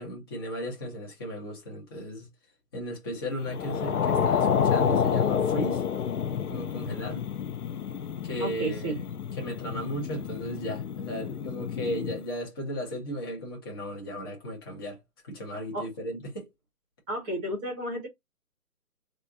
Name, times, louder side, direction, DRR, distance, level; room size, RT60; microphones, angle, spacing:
voice 1, 0.0-2.3 2.7-5.8 6.5-7.2 8.2-9.0 9.4-16.5, equal, 15° left, 0.9 m, -35 dB
sound 1, 3.5-12.2, left 7 dB, 80° left, 0.7 m, -29 dB
voice 2, 8.4-9.0 15.7-15.9 17.1-18.1, right 1 dB, 10° right, 1.0 m, -32 dB
4.1 x 2.5 x 2.6 m
hypercardioid pair, 155°, 45 cm